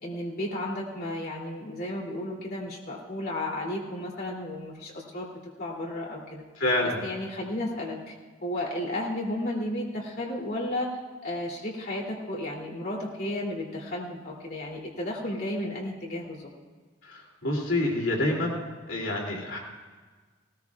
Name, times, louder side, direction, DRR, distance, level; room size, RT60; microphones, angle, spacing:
voice 1, 0.0-5.3 5.6-6.4 6.8-8.1 8.4-10.9 11.2-16.5, left 1 dB, 50° left, -3 dB, 2.8 m, -33 dB
voice 2, 6.6-7.0 17.1-18.6 18.9-19.6, left 1 dB, 85° left, -1 dB, 2.7 m, -27 dB
19.5 x 19.0 x 2.4 m, 1.4 s
head